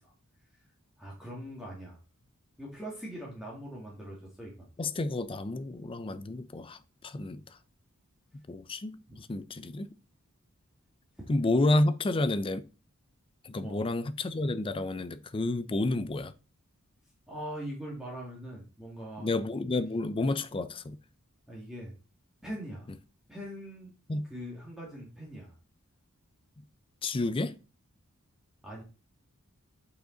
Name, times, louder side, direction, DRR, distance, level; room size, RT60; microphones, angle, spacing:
voice 1, 1.0-2.0 2.6-4.7 9.1-9.2 11.2-11.3 13.6-13.8 17.3-19.3 21.5-22.0 22.4-22.9 23.3-23.9 24.2-25.6 28.6-28.8, equal, ahead, 2.0 m, -42 dB
voice 2, 4.8-7.6 8.5-9.9 11.3-12.7 13.4-16.3 19.2-21.0 24.1-24.3 27.0-27.6, left 2 dB, 25° left, 0.4 m, -30 dB
9.0 x 5.1 x 3.9 m
head